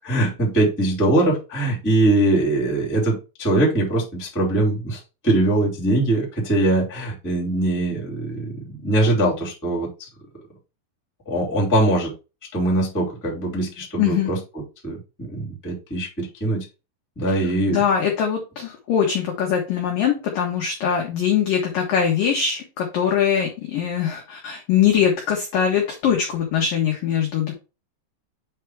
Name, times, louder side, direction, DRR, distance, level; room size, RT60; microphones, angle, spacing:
voice 1, 0.0-10.1 11.2-12.1 12.5-14.4 14.8-16.6 17.1-17.8, right 1 dB, 5° left, -4 dB, 1.4 m, -22 dB
voice 2, 14.0-14.3 17.3-17.4 17.7-27.5, left 8 dB, 80° left, 0 dB, 2.0 m, -22 dB
8.3 x 3.5 x 4.6 m, 0.30 s
omnidirectional pair, 5.9 m